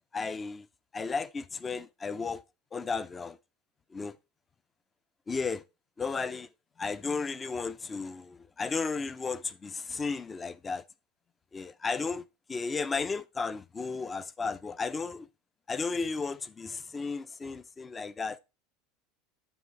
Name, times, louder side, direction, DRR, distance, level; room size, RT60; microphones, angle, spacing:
voice 1, 0.1-0.7 0.9-2.4 2.7-3.4 3.9-4.2 5.3-5.6 6.0-6.5 6.8-10.8 11.5-12.2 12.5-15.3 15.7-18.4, left 4 dB, 20° left, 0.5 m, -34 dB
9.1 x 3.2 x 4.8 m
figure-of-eight pair, 75°, 0 cm